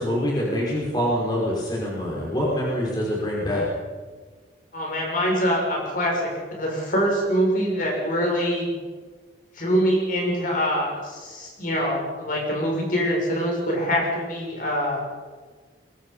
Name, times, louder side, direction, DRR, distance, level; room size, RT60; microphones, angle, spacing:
voice 1, 0.0-3.6, equal, 25° left, -4 dB, 5.3 m, -25 dB
voice 2, 4.7-8.7 9.5-15.0, equal, 50° left, -1 dB, 6.8 m, -24 dB
23.0 x 23.0 x 5.7 m, 1.4 s
head